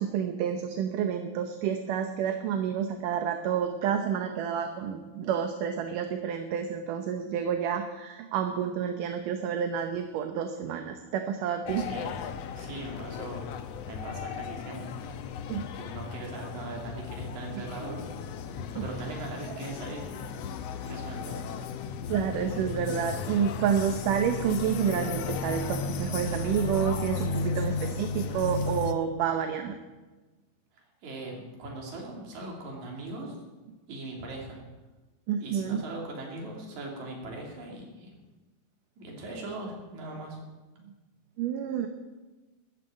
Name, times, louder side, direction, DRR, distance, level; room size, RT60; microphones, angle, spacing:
voice 1, 0.0-11.9 15.5-15.6 17.5-17.6 18.8-18.9 22.1-29.8 35.3-35.8 41.4-41.9, right 8 dB, 75° right, 6 dB, 2.4 m, -29 dB
sound 1, 11.7-28.9, left 4 dB, 80° left, 1.4 m, -35 dB
voice 2, 11.8-13.4 13.9-15.0 15.7-18.2 18.8-20.1 20.8-21.4 31.0-33.4 33.9-34.6 35.4-38.1 39.0-40.4, right 2 dB, 55° right, -1 dB, 4.3 m, -40 dB
13.5 x 9.4 x 8.9 m, 1.2 s
omnidirectional pair, 4.0 m